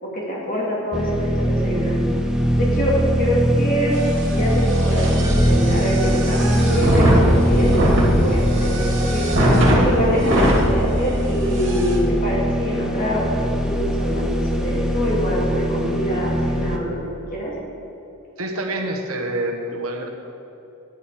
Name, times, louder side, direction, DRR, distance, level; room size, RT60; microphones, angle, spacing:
voice 1, 0.0-2.1 2.6-3.9 4.3-9.3 9.7-17.0 17.3-17.5, equal, 40° left, -4 dB, 2.6 m, -24 dB
sound 1, 0.9-16.8, equal, 5° right, 0.7 m, -21 dB
sound 2, 3.9-10.6 11.2-11.3 11.5-11.9, equal, 60° right, 2.6 m, -21 dB
voice 2, 18.4-20.1, right 1 dB, 90° right, 2 dB, 1.3 m, -27 dB
10.5 x 8.5 x 4.9 m, 2.9 s
head